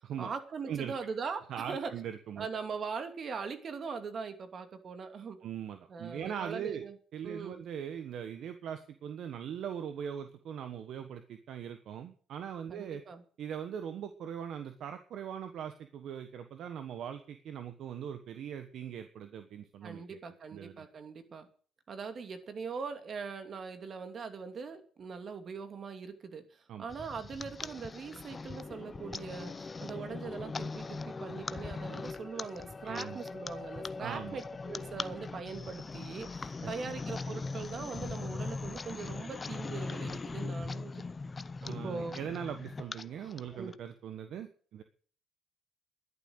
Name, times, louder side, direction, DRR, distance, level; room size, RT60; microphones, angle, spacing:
voice 1, 0.2-1.9 2.4-5.4 5.9-6.9 7.2-7.6 12.7-13.2 19.8-21.5 21.9-26.4 26.8-41.1 41.6-42.2 43.6-43.7, right 5 dB, 50° right, 7 dB, 2.6 m, -41 dB
voice 2, 1.5-2.5 5.4-6.8 7.1-13.0 13.4-20.2 20.5-20.9 26.7-26.9 32.8-33.2 34.0-34.4 36.6-36.9 41.6-44.8, right 8 dB, 65° right, 8 dB, 1.3 m, -40 dB
sound 1, 26.9-43.7, left 3 dB, 30° left, 0.7 m, -40 dB
11.5 x 11.0 x 6.5 m, 0.43 s
supercardioid pair, 75°, 0 cm